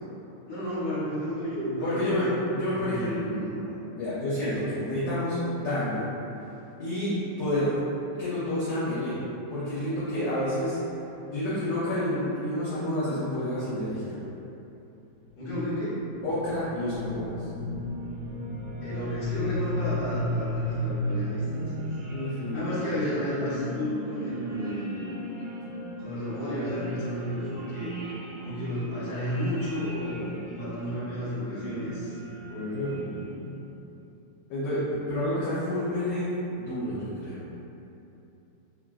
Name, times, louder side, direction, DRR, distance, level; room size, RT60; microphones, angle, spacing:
voice 1, 0.5-2.2 2.7-3.8 15.4-16.0 18.8-21.9 22.3-25.1 26.0-27.9 28.4-32.2, equal, 50° left, -11 dB, 1.2 m, -32 dB
voice 2, 1.8-3.2 3.9-6.1 6.8-7.7 8.2-9.1 9.5-10.8 11.3-14.1 16.2-17.5 22.1-22.7 31.6-32.0 32.5-33.5 34.5-37.4, left 1 dB, 70° left, -10 dB, 1.1 m, -29 dB
sound 1, 15.3-33.7, equal, 70° right, 1.3 m, -35 dB
3.1 x 2.4 x 2.3 m, 2.9 s
omnidirectional pair, 2.1 m